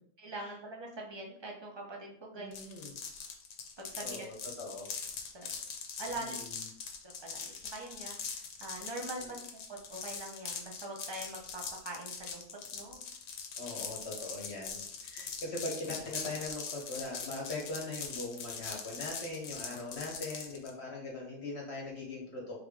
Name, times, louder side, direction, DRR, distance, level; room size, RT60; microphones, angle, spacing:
voice 1, 0.2-2.5 3.8-4.3 5.3-5.5 6.0-6.3 7.2-9.4 9.9-12.4 12.7-13.0, right 2 dB, 30° right, -1 dB, 0.5 m, -43 dB
voice 2, 2.3-2.9 3.9-4.9 6.1-6.7 9.2-9.3 13.6-22.6, left 2 dB, 45° left, -1 dB, 1.1 m, -41 dB
sound 1, 2.5-20.7, left 6 dB, 85° left, 1.3 m, -42 dB
3.9 x 3.5 x 3.5 m, 0.65 s
omnidirectional pair, 1.7 m